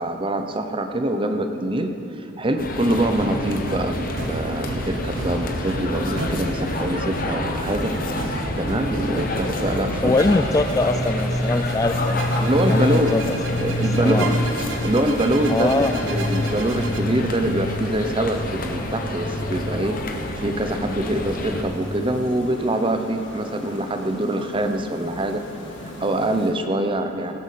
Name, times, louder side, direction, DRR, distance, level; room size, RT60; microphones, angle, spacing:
voice 1, 0.0-10.2 12.4-13.3 13.6-14.4 14.8-20.0 20.3-25.4 26.0-27.4, right 1 dB, 25° right, 7 dB, 0.7 m, -24 dB
sound 1, 2.6-21.6, left 1 dB, 45° left, 1.1 m, -27 dB
sound 2, 2.8-17.0, right 2 dB, 75° right, 1.0 m, -33 dB
voice 2, 10.0-12.3 12.7-14.3 15.5-16.0, left 2 dB, 20° left, 8 dB, 0.3 m, -23 dB
sound 3, 10.6-26.5, left 1 dB, 70° left, 1.8 m, -38 dB
17.0 x 8.0 x 6.6 m, 3.0 s
head